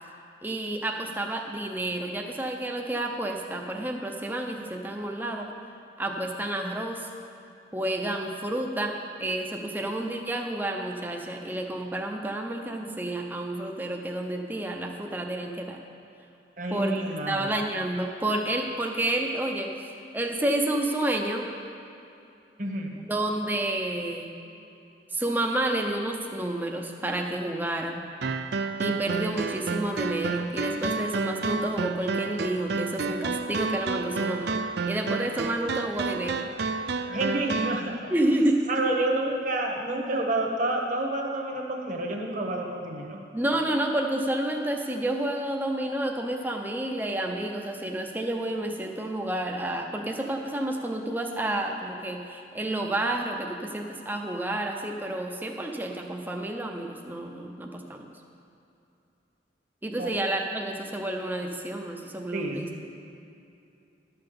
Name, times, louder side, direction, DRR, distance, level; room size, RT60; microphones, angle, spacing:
voice 1, 0.4-5.6 6.0-7.1 7.7-15.8 16.7-21.5 23.1-24.3 25.1-28.0 28.8-34.6 34.9-36.4 38.1-38.9 43.3-58.1 59.8-62.7, right 1 dB, 10° right, 2 dB, 0.7 m, -30 dB
voice 2, 16.6-17.5 22.6-23.0 37.1-38.1 38.7-43.2 60.0-60.1 62.3-62.8, right 2 dB, 45° right, 0 dB, 1.2 m, -29 dB
sound 1, 28.2-37.8, right 4 dB, 65° right, 0.4 m, -30 dB
12.0 x 5.8 x 6.9 m, 2.7 s
head